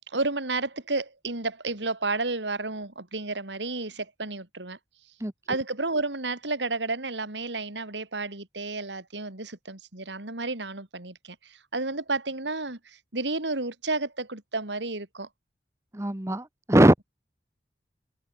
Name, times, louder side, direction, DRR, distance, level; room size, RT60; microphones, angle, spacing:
voice 1, 0.0-4.8 5.5-15.3, right 3 dB, 90° right, 3.6 m, -31 dB
voice 2, 15.9-17.0, right 1 dB, 15° right, 0.9 m, -21 dB
head